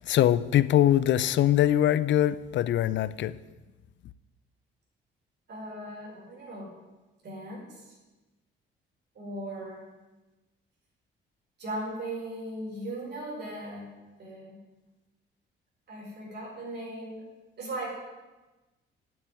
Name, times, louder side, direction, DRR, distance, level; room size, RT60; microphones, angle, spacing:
voice 1, 0.1-3.4, left 12 dB, 65° left, 0.6 m, -23 dB
voice 2, 5.5-6.7 7.2-7.9 9.1-9.8 11.6-13.9 14.2-14.6 15.9-17.3 17.6-17.9, right 1 dB, 55° right, 4.9 m, -38 dB
9.1 x 7.9 x 9.0 m
cardioid pair, 90°, 20 cm